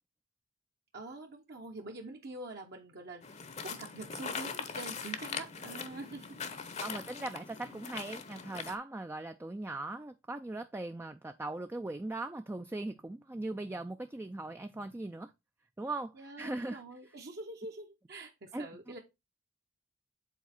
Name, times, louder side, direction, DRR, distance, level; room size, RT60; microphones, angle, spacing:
voice 1, 0.9-6.5 7.7-7.8 16.1-19.0, right 2 dB, 55° right, 1.0 m, -45 dB
sound 1, 3.2-8.8, left 5 dB, 35° left, 0.7 m, -41 dB
voice 2, 6.8-15.3 15.8-16.8 18.5-18.7, right 2 dB, 10° right, 0.3 m, -39 dB
7.2 x 4.1 x 4.3 m
head